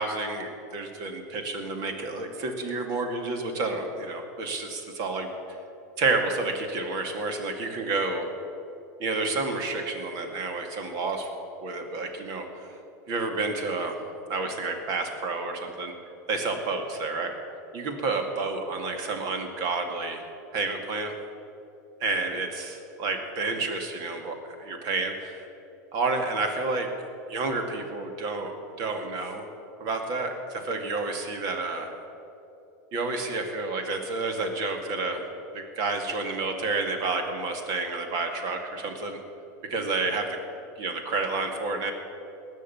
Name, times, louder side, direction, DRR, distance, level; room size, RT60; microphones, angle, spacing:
voice 1, 0.0-5.3 6.0-8.3 9.0-11.3 11.6-12.5 13.1-14.0 14.3-15.9 16.3-17.3 17.7-20.2 20.5-21.1 22.0-25.4 25.9-26.9 27.3-28.5 28.8-29.5 29.8-31.9 32.9-35.2 35.5-39.2 39.7-40.4 40.8-41.9, right 3 dB, 45° right, 5 dB, 2.2 m, -30 dB
18.5 x 6.6 x 9.5 m, 2.8 s
supercardioid pair, 145°, 9 cm